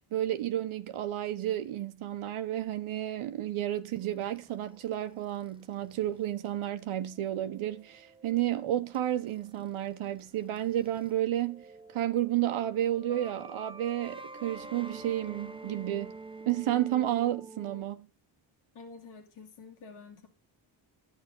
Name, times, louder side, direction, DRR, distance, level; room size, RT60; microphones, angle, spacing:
voice 1, 0.1-11.6 11.9-16.1 16.5-18.1, right 12 dB, 80° right, 1.0 m, -31 dB
sound 1, 3.9-11.1 11.4-17.8, right 3 dB, 10° right, 0.9 m, -49 dB
voice 2, 18.7-20.3, left 4 dB, 90° left, 2.7 m, -49 dB
11.0 x 8.7 x 5.3 m
supercardioid pair, 55°, 49 cm